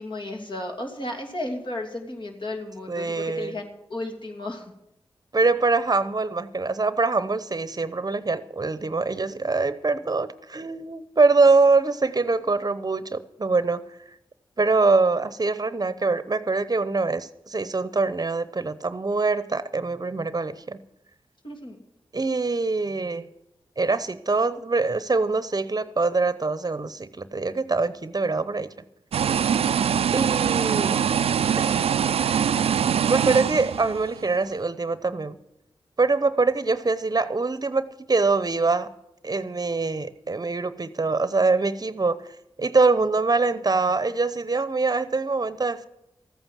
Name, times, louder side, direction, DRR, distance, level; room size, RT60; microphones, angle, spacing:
voice 1, 0.0-4.7 21.4-21.8, left 1 dB, 55° left, 1 dB, 2.8 m, -34 dB
voice 2, 2.9-3.5 5.3-13.9 14.6-20.8 22.1-23.3 23.8-28.7 30.1-31.0 31.6-31.8 33.1-35.4 36.0-38.9 39.2-42.3 42.6-45.9, right 3 dB, 40° right, 14 dB, 0.8 m, -24 dB
sound 1, 29.1-34.3, right 8 dB, 85° right, 0.4 m, -23 dB
14.0 x 9.0 x 7.4 m, 0.86 s
cardioid pair, 50°, 10 cm